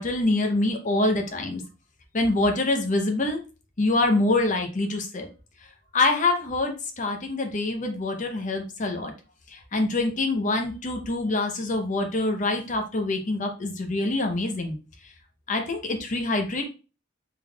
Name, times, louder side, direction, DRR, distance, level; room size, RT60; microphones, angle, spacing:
voice 1, 0.0-1.6 2.1-3.4 3.8-5.3 5.9-9.1 9.5-14.8 15.5-16.6, left 2 dB, 40° left, 4 dB, 0.7 m, -25 dB
3.6 x 3.4 x 2.3 m, 0.33 s
head